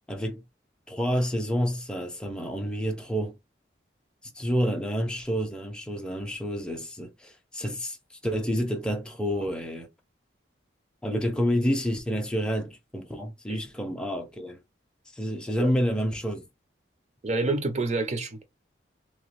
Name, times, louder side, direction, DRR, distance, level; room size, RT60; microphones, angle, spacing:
voice 1, 0.1-0.4 0.9-3.4 4.4-8.0 8.2-9.9 11.0-14.6 15.1-16.5, equal, 5° left, 0.5 m, -29 dB
voice 2, 17.2-18.4, right 3 dB, 35° right, 0.7 m, -28 dB
2.9 x 2.2 x 3.1 m
head